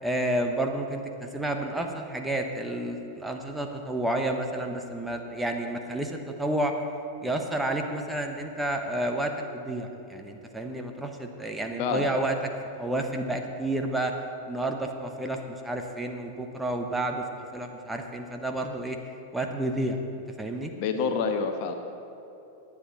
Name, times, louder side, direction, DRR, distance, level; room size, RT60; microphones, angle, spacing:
voice 1, 0.0-6.7 7.2-12.4 12.8-14.1 14.5-17.3 17.5-19.0 19.3-20.0 20.4-20.7, right 1 dB, 5° right, 3 dB, 1.1 m, -30 dB
voice 2, 20.8-21.7, left 5 dB, 45° left, 6 dB, 1.1 m, -27 dB
18.0 x 9.8 x 4.1 m, 2.9 s
figure-of-eight pair, 90°, 0 cm